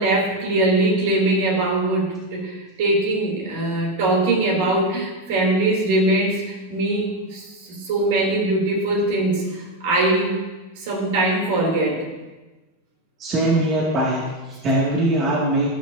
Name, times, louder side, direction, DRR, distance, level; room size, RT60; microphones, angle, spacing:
voice 1, 0.0-10.4 10.8-12.0, right 2 dB, 65° right, -1 dB, 3.3 m, -21 dB
voice 2, 13.2-15.7, right 1 dB, 35° right, -4 dB, 2.3 m, -21 dB
16.5 x 6.3 x 2.8 m, 1.1 s
hypercardioid pair, 100°, 0 cm